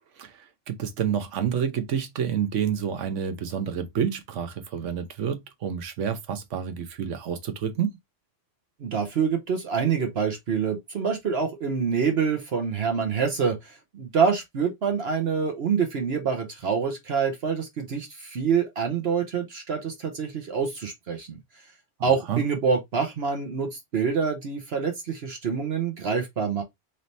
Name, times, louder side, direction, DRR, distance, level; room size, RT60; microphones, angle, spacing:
voice 1, 0.2-8.0 22.3-22.4, right 8 dB, 80° right, 1.1 m, -29 dB
voice 2, 8.8-21.4 22.0-26.6, right 6 dB, 60° right, 1.0 m, -26 dB
3.2 x 2.8 x 4.0 m
omnidirectional pair, 1.2 m